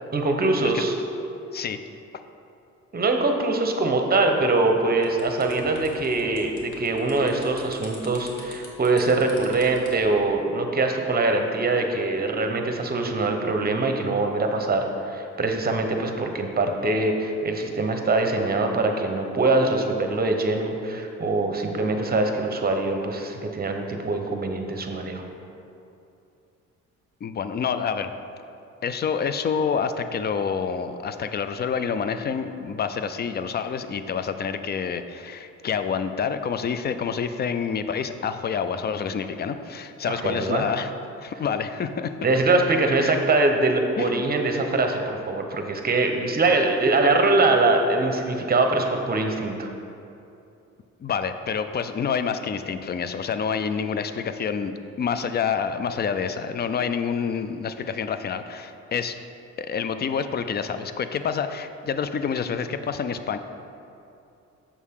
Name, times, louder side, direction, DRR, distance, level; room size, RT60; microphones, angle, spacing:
voice 1, 0.1-1.0 2.9-25.2 40.0-40.7 42.2-49.7, right 2 dB, 30° right, 4 dB, 0.8 m, -23 dB
sound 1, 5.0-10.1, left 2 dB, 90° left, 1.1 m, -44 dB
voice 2, 27.2-28.2 28.8-40.9 41.2-42.1 43.0-43.2 44.0-44.2 51.0-59.2 59.6-63.4, left 6 dB, 35° left, 10 dB, 0.4 m, -28 dB
7.1 x 6.4 x 3.7 m, 2.7 s
cardioid pair, 90°, 30 cm